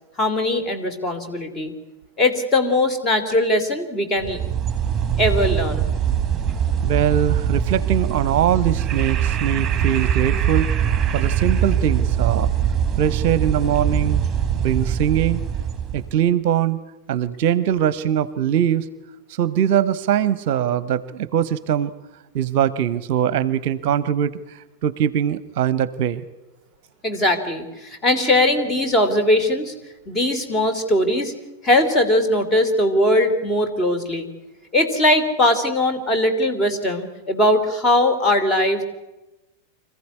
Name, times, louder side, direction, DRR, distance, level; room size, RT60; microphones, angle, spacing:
voice 1, 0.2-1.7 2.2-4.5 5.2-5.9 27.0-29.7 30.1-31.3 31.6-34.3 34.7-38.8, left 1 dB, 20° left, 7 dB, 3.0 m, -20 dB
sound 1, 4.2-16.1, right 8 dB, 20° right, 1.9 m, -22 dB
voice 2, 6.8-10.7 11.1-12.5 13.0-14.2 14.6-15.4 15.9-16.8 17.1-18.9 19.3-21.9 22.3-26.2, right 10 dB, 50° right, 18 dB, 0.7 m, -22 dB
25.5 x 15.0 x 9.6 m, 1.0 s
figure-of-eight pair, 90°, 0 cm